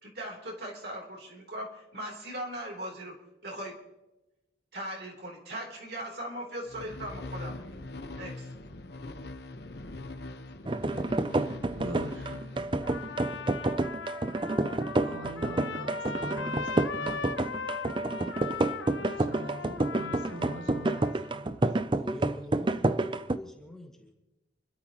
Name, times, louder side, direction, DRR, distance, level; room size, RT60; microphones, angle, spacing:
voice 1, 0.0-3.1 3.4-3.7 4.7-7.5 8.2-8.5, right 1 dB, 55° right, -1 dB, 3.5 m, -39 dB
sound 1, 6.7-14.1, left 2 dB, 55° left, 1.1 m, -42 dB
sound 2, 10.7-23.4, right 2 dB, 25° right, 0.5 m, -29 dB
voice 2, 11.7-12.4 15.0-17.2 19.0-21.6, right 1 dB, 85° right, 6 dB, 1.2 m, -42 dB
Trumpet, 12.8-21.3, left 5 dB, 80° left, 1.2 m, -39 dB
voice 3, 22.0-24.1, left 1 dB, 5° left, 1 dB, 1.9 m, -43 dB
28.5 x 12.5 x 3.0 m, 1.0 s
head